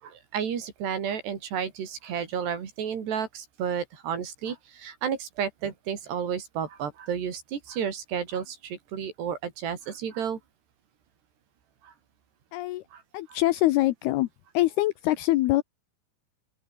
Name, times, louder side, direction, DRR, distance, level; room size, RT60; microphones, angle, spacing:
voice 1, 0.0-10.4 11.8-11.9 12.9-13.0 13.3-13.4, right 8 dB, 60° right, 5.1 m, -32 dB
voice 2, 12.5-12.8 13.1-14.3 14.5-15.6, left 17 dB, 80° left, 2.3 m, -24 dB
open air
omnidirectional pair, 5.7 m